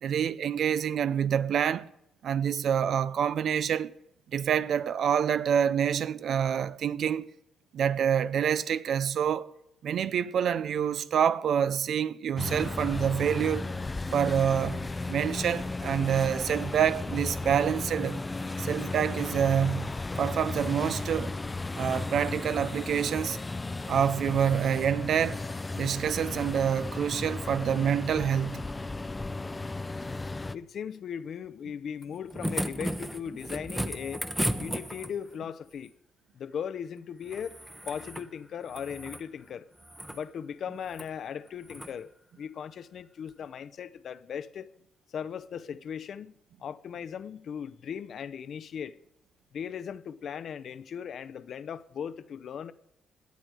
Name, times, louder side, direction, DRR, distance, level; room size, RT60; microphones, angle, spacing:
voice 1, 0.0-1.9 2.2-3.9 4.3-7.3 7.7-9.5 9.8-13.7 14.1-18.2 18.6-21.3 21.7-23.4 23.9-25.4 25.8-28.7, right 8 dB, 65° right, 0.5 m, -27 dB
sound 1, 12.4-30.6, left 3 dB, 20° left, 0.5 m, -35 dB
voice 2, 30.5-34.2 34.6-35.9 36.3-37.6 37.9-39.7 40.1-42.1 42.4-44.7 45.1-46.3 46.6-49.0 49.5-52.7, left 8 dB, 60° left, 0.6 m, -38 dB
sound 2, 32.0-35.3 37.3-38.3 38.6-39.3 39.8-40.2 40.9-41.1 41.7-41.9 43.3-43.4, right 1 dB, 5° right, 0.9 m, -35 dB
17.5 x 10.5 x 4.8 m
cardioid pair, 90°, 0 cm